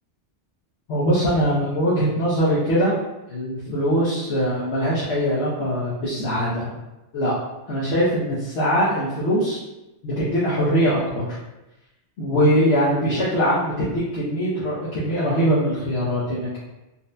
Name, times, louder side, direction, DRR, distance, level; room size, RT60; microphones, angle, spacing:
voice 1, 0.9-3.0 3.3-6.7 7.1-7.3 7.7-9.6 10.0-11.4 12.2-16.6, equal, 80° left, -8 dB, 1.1 m, -22 dB
4.0 x 2.1 x 2.6 m, 0.99 s
omnidirectional pair, 1.2 m